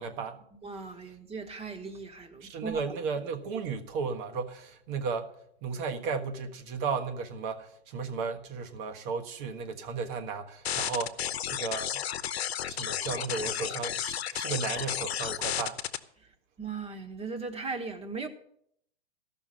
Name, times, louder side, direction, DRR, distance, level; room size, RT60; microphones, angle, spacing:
voice 1, 0.0-0.4 2.4-5.3 5.6-11.2 11.5-12.0 12.7-15.8, right 5 dB, 50° right, 1.5 m, -34 dB
voice 2, 0.6-2.8 16.6-18.3, right 4 dB, 20° right, 1.4 m, -38 dB
sound 1, 10.6-16.0, left 10 dB, 75° left, 0.9 m, -32 dB
14.0 x 6.0 x 7.5 m
hypercardioid pair, 110°, 31 cm